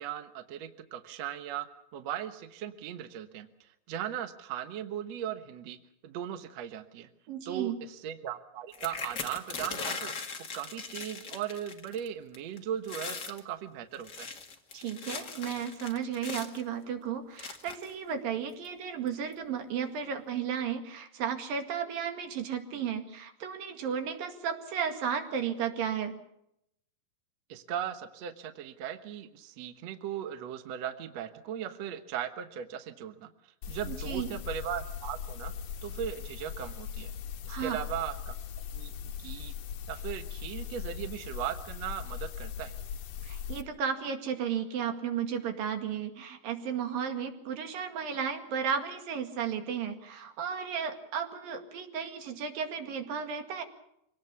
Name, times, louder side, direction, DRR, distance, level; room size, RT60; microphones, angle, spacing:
voice 1, 0.0-1.7 1.9-5.8 6.0-7.1 7.5-10.1 10.5-14.3 27.5-33.3 33.7-35.5 35.8-37.1 37.4-38.4 38.7-38.9 39.2-39.5 39.9-42.7, right 10 dB, 60° right, 8 dB, 2.2 m, -38 dB
voice 2, 7.3-7.8 14.7-26.2 33.9-34.3 37.5-37.8 43.2-53.6, right 7 dB, 80° right, 6 dB, 3.9 m, -34 dB
sound 1, 8.7-12.1 12.3-12.6 12.8-13.4 13.9-16.6 17.4-17.9 18.6-18.7 19.1-19.3, left 5 dB, 35° left, 2.2 m, -39 dB
sound 2, 33.6-43.6, left 8 dB, 80° left, 2.9 m, -39 dB
25.5 x 18.5 x 7.0 m, 0.78 s
omnidirectional pair, 4.0 m